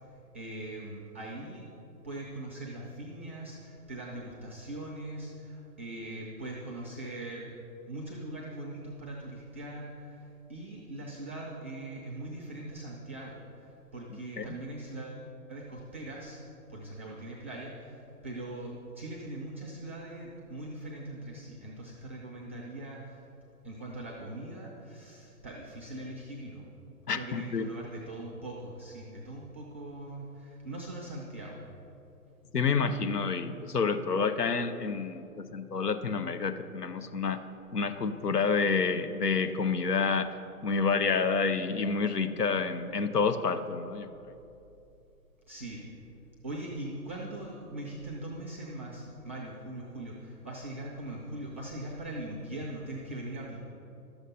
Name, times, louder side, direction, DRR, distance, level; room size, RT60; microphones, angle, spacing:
voice 1, 0.3-1.7 2.0-7.5 7.9-15.2 15.5-16.4 16.7-23.2 23.6-26.7 27.1-31.7 45.5-45.8 46.4-53.6, right 1 dB, 10° right, -2 dB, 0.4 m, -41 dB
voice 2, 27.1-27.7 32.5-37.4 37.7-40.3 40.6-44.1, left 5 dB, 85° left, 10 dB, 0.8 m, -28 dB
11.5 x 7.2 x 5.5 m, 2.7 s
figure-of-eight pair, 130°, 46 cm